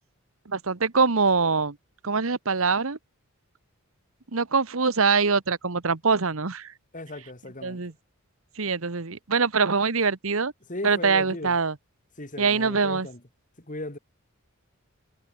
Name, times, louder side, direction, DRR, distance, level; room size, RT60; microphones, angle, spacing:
voice 1, 0.5-1.7 2.0-3.0 4.3-6.7 7.6-7.9 8.6-10.5 10.8-11.7 12.4-13.1, right 4 dB, 70° right, 1.2 m, -23 dB
voice 2, 6.9-7.8 10.7-11.6 12.2-13.2 13.6-14.0, left 1 dB, 35° left, 3.0 m, -37 dB
head